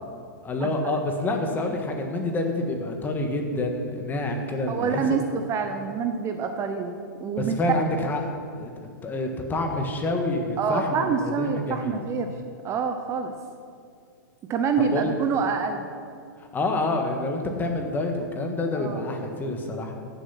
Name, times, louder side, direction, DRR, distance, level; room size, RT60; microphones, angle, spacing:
voice 1, 0.4-5.2 7.4-8.2 8.5-8.7 9.0-12.0 14.8-15.1 16.4-19.9, left 2 dB, 15° left, 3 dB, 1.5 m, -27 dB
voice 2, 4.7-7.0 7.2-7.5 10.6-12.3 12.6-13.3 14.5-15.9 18.7-19.0, right 6 dB, 25° right, 6 dB, 0.7 m, -26 dB
14.5 x 7.1 x 5.8 m, 2.3 s
hypercardioid pair, 125°, 11 cm